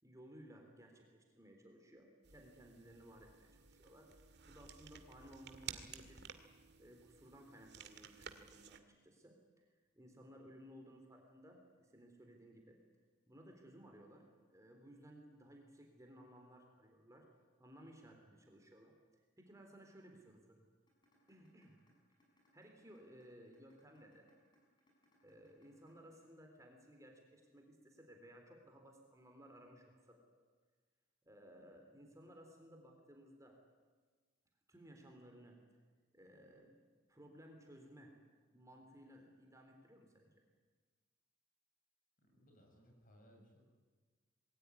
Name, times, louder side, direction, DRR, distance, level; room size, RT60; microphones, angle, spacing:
voice 1, 0.0-4.1 4.4-6.2 6.8-9.6 10.0-12.8 13.3-17.3 17.6-20.6 21.3-21.7 22.5-24.3 25.2-30.2 31.3-33.6 34.7-35.6 36.1-36.8 37.1-38.1 38.5-40.4, equal, 15° right, 2 dB, 3.7 m, -59 dB
sound 1, 2.2-8.8, right 7 dB, 55° right, 2.0 m, -54 dB
sound 2, 20.9-26.9, left 1 dB, 20° left, 7.9 m, -74 dB
voice 2, 42.2-43.6, equal, 40° left, 2 dB, 7.3 m, -65 dB
26.5 x 21.5 x 9.7 m, 1.4 s
head